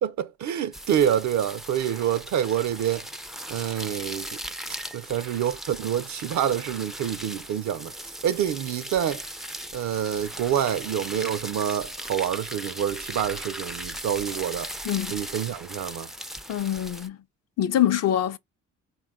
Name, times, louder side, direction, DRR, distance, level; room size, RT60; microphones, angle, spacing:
voice 1, 0.0-3.1 3.5-4.3 4.9-7.9 8.2-9.2 9.7-14.7 15.1-16.1, right 10 dB, 70° right, 0.5 m, -27 dB
sound 1, 0.7-17.1, right 1 dB, ahead, 0.3 m, -38 dB
voice 2, 14.8-15.2 16.5-17.2 17.6-18.4, left 11 dB, 55° left, 0.5 m, -24 dB
4.1 x 2.2 x 3.6 m
cardioid pair, 90°, 30 cm